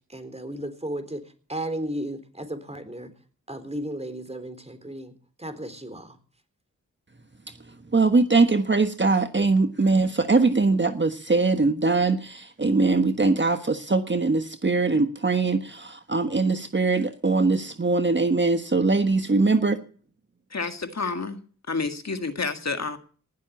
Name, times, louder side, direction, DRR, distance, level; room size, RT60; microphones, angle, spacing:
voice 1, 0.1-1.2 1.5-3.1 3.5-5.1 5.4-6.2, right 1 dB, 20° right, 9 dB, 3.8 m, -34 dB
voice 2, 7.9-19.8, right 3 dB, 35° right, 8 dB, 1.4 m, -22 dB
voice 3, 20.5-21.4 21.7-23.0, left 4 dB, 50° left, 8 dB, 1.9 m, -29 dB
19.0 x 7.5 x 8.4 m, 0.43 s
cardioid pair, 45°, 33 cm